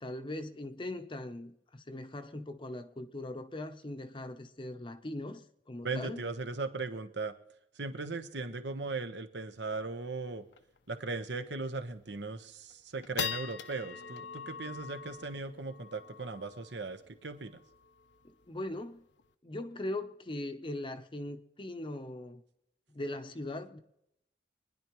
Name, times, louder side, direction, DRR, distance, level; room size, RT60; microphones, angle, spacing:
voice 1, 0.0-6.3 18.2-19.1 19.4-22.4 22.9-23.8, left 1 dB, 30° left, 0.7 m, -40 dB
voice 2, 5.8-7.4 7.7-10.4 10.9-17.6, right 3 dB, 70° right, 1.1 m, -38 dB
sound 1, 9.7-9.8 10.0-10.1 10.5-10.8 11.3-11.4 11.9-12.3 12.7-19.3, left 7 dB, 75° left, 0.7 m, -43 dB
25.0 x 10.5 x 3.1 m
head